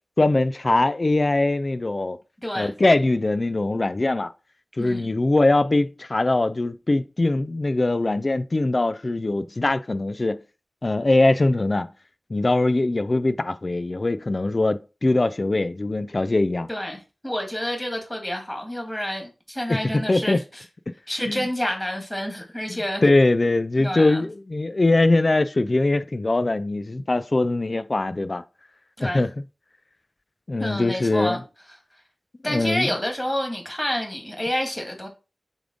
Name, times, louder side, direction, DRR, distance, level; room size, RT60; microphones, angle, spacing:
voice 1, 0.2-2.2 2.6-4.3 4.8-10.4 10.8-11.9 12.3-16.7 19.7-20.4 21.3-21.4 22.7-28.4 29.0-29.3 30.5-31.4 32.5-32.9, left 2 dB, 40° left, 0.3 m, -22 dB
voice 2, 2.4-2.7 4.8-5.1 16.7-20.4 21.1-23.0 23.8-24.2 29.0-29.3 30.6-31.4 32.4-35.1, equal, 10° left, 1.9 m, -28 dB
6.9 x 3.6 x 3.8 m
wide cardioid pair, 90°, 0 cm